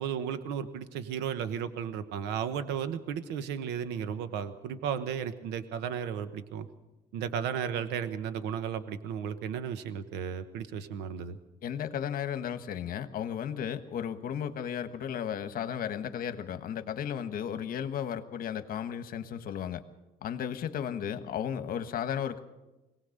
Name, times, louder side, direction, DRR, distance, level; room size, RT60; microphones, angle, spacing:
voice 1, 0.0-6.7 7.1-11.4, right 8 dB, 90° right, 11 dB, 1.2 m, -34 dB
voice 2, 11.6-19.8 20.2-22.4, left 8 dB, 60° left, 10 dB, 1.4 m, -34 dB
22.5 x 18.0 x 6.6 m, 1.0 s
cardioid pair, 110°, 17 cm